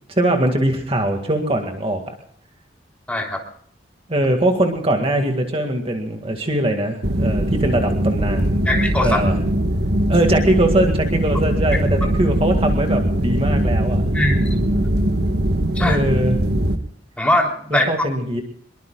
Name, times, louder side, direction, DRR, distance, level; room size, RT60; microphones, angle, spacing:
voice 1, 0.1-2.1 4.1-8.6 9.0-9.4 10.1-14.0 15.8-16.4 17.7-18.4, right 1 dB, 30° right, 3 dB, 2.1 m, -21 dB
voice 2, 3.1-3.4 8.7-9.2 14.1-14.9 15.8-16.0 17.2-17.9, left 1 dB, 5° left, 0 dB, 3.7 m, -21 dB
sound 1, 7.0-16.8, right 1 dB, 60° right, 1.5 m, -20 dB
25.0 x 22.5 x 2.4 m, 0.63 s
head